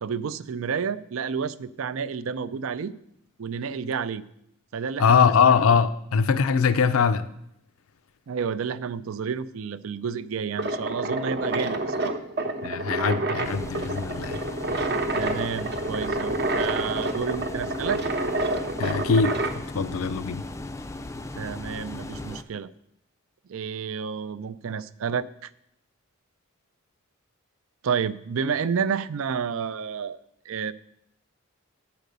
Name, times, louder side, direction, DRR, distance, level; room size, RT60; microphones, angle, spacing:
voice 1, 0.0-2.9 3.4-4.2 4.7-5.6 8.3-12.2 15.1-18.0 21.4-22.7 23.5-25.5 27.8-30.2 30.5-30.7, right 6 dB, 70° right, 0.4 m, -30 dB
voice 2, 5.0-7.2 12.6-14.4 18.8-19.4 19.7-20.4, left 6 dB, 80° left, 0.5 m, -22 dB
sound 1, 10.5-19.6, right 2 dB, 55° right, 0.9 m, -28 dB
sound 2, 13.4-22.4, left 2 dB, 15° left, 0.4 m, -37 dB
9.3 x 5.1 x 6.7 m
head